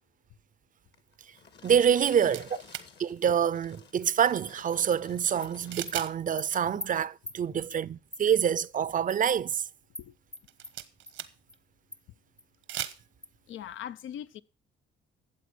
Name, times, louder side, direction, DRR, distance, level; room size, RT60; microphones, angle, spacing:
sound 1, 0.9-6.1 6.4-6.8 7.4-7.5, left 6 dB, 60° left, 1.8 m, -53 dB
voice 1, 1.6-2.5 3.0-9.6, right 8 dB, 40° right, 0.6 m, -26 dB
voice 2, 2.2-2.6 10.0-10.2 13.5-14.4, left 10 dB, 80° left, 0.7 m, -41 dB
sound 2, 2.3-2.9 5.7-6.1 6.4-6.5 10.4-11.5 12.5-13.0, right 12 dB, 90° right, 1.2 m, -37 dB
Animal, 4.4-4.5 4.9-5.0 5.4-5.5 5.9-6.0 6.4-6.5 6.8-6.9 7.3-7.4 7.7-7.8 8.1-8.2 8.6-8.7 9.1-9.2 9.5-9.6 9.9-10.1 10.3-10.7 11.1-11.2 11.5-11.6 11.9-12.0 12.4-12.5 12.8-12.9 13.2-13.3, left 2 dB, 10° left, 0.7 m, -42 dB
13.0 x 7.8 x 6.3 m
cardioid pair, 90°, 20 cm